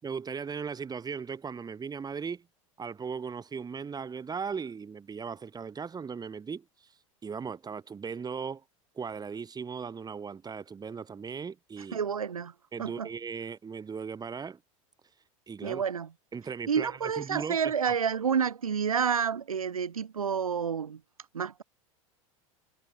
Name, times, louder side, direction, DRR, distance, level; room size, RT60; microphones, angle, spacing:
voice 1, 0.0-2.5 2.8-6.7 7.2-8.6 9.0-12.0 12.7-14.6 15.5-15.8 16.3-17.6, right 6 dB, 20° right, 6.9 m, -37 dB
voice 2, 11.9-12.5 12.8-13.1 15.6-16.1 16.7-21.0 21.3-21.6, right 7 dB, 85° right, 5.7 m, -29 dB
hypercardioid pair, 90°, 18 cm